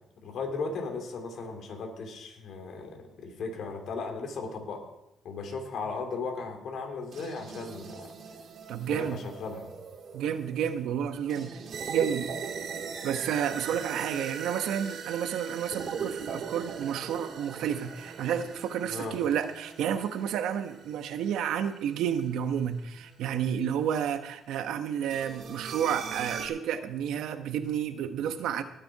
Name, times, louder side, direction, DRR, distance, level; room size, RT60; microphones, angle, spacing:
voice 1, 0.2-4.8 5.2-8.1 8.9-9.7 18.9-19.2, left 4 dB, 70° left, 3 dB, 3.0 m, -36 dB
sound 1, 7.1-23.2 25.1-26.5, right 6 dB, 60° right, 1.8 m, -40 dB
voice 2, 8.7-9.2 10.1-11.6 11.9-12.3 13.0-28.6, right 9 dB, 85° right, 9 dB, 1.0 m, -30 dB
19.0 x 6.9 x 4.7 m, 0.84 s
cardioid pair, 90°, 0 cm